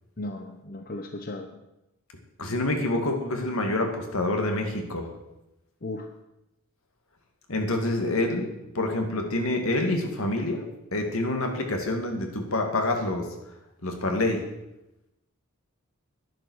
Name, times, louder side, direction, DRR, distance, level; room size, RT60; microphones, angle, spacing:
voice 1, 0.2-1.6 5.8-6.1, left 2 dB, 40° left, 5 dB, 0.8 m, -36 dB
voice 2, 2.4-5.1 7.5-10.6 10.9-13.3 13.8-14.4, left 2 dB, 75° left, 3 dB, 2.3 m, -27 dB
10.5 x 10.5 x 6.4 m, 0.92 s
head